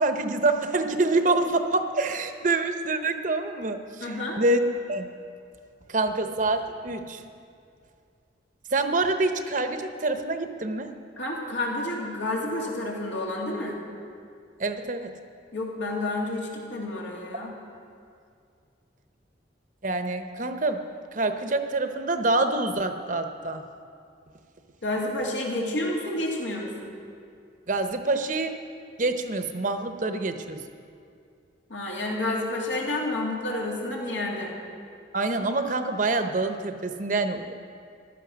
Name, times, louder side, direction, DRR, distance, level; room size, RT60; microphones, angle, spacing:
voice 1, 0.0-4.6 4.9-5.1 5.9-7.2 8.7-10.9 14.6-15.2 19.8-20.8 21.1-23.6 27.7-28.6 29.0-30.6 35.1-37.5, right 2 dB, 45° right, 7 dB, 0.8 m, -26 dB
voice 2, 4.0-4.4 11.2-13.8 15.5-17.5 24.8-26.9 31.7-34.5, left 1 dB, 85° left, -2 dB, 2.8 m, -30 dB
15.5 x 12.0 x 6.2 m, 2.3 s
head